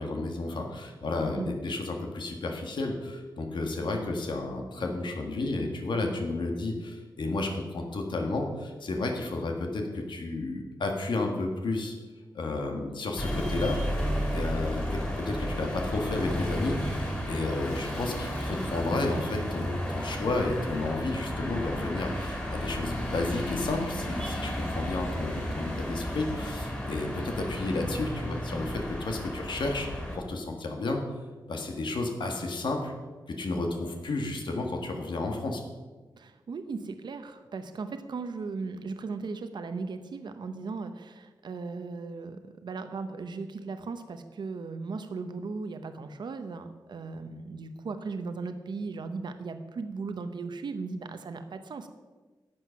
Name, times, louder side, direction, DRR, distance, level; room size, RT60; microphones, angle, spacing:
voice 1, 0.0-11.9 12.3-13.8 14.3-31.0 31.5-32.9 33.3-35.6, left 2 dB, 80° left, 3 dB, 1.7 m, -32 dB
sound 1, 13.2-30.2, equal, 15° left, 3.6 m, -33 dB
voice 2, 36.2-51.9, right 4 dB, 70° right, 8 dB, 0.8 m, -37 dB
12.0 x 7.8 x 5.8 m, 1.3 s
wide cardioid pair, 110°, 8 cm